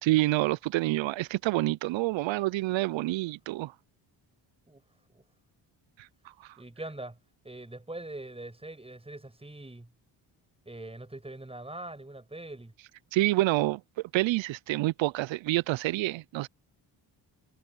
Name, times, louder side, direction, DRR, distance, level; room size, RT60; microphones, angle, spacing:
voice 1, 0.0-3.7 6.4-6.5 13.1-13.8 14.1-16.5, right 18 dB, 75° right, 0.5 m, -27 dB
voice 2, 6.6-7.2 7.4-9.9 10.6-12.7, right 2 dB, 10° right, 6.3 m, -42 dB
cardioid pair, 85°, 46 cm